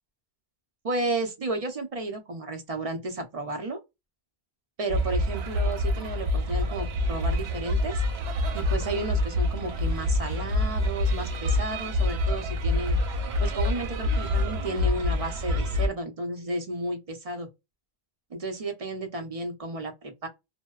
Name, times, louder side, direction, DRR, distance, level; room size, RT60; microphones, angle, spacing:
voice 1, 0.8-3.8 4.8-8.0 8.5-13.0 13.4-17.5 18.3-20.3, right 2 dB, 40° right, 0.6 m, -33 dB
sound 1, 4.9-15.9, left 1 dB, 80° right, 0.8 m, -26 dB
2.6 x 2.1 x 2.3 m
omnidirectional pair, 1.1 m